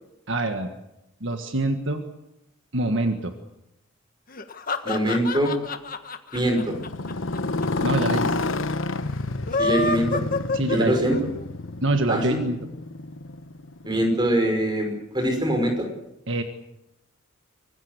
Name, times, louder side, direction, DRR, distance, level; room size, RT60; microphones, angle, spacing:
voice 1, 0.3-0.7 1.2-2.0 2.7-3.3 7.8-8.3 10.5-10.9 11.8-12.6 16.3-16.4, right 2 dB, 65° right, 6 dB, 1.7 m, -25 dB
sound 1, 4.3-7.7 7.9-8.0 8.2-8.3 9.3-11.4, left 3 dB, 45° left, 1.5 m, -27 dB
voice 2, 4.8-5.6 6.3-6.7 9.6-10.2 10.7-11.3 12.1-12.4 13.8-15.9, right 1 dB, 20° right, 5 dB, 5.7 m, -23 dB
Motorcycle, 6.4-14.5, left 2 dB, 75° left, 1.2 m, -30 dB
25.0 x 19.5 x 8.3 m, 0.87 s
head